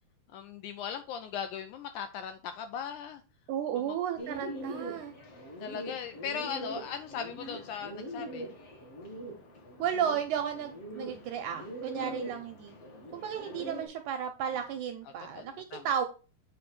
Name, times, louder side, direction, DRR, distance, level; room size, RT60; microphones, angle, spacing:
voice 1, 0.3-3.2 3.7-3.8 5.6-8.5 12.0-12.4 15.4-15.9, left 7 dB, 85° left, 8 dB, 1.8 m, -39 dB
voice 2, 3.5-5.1 9.8-12.7 13.1-16.1, right 8 dB, 80° right, 7 dB, 1.8 m, -33 dB
Bird, 4.2-13.9, right 1 dB, 50° left, 2.6 m, -42 dB
7.8 x 3.3 x 6.0 m, 0.35 s
omnidirectional pair, 4.1 m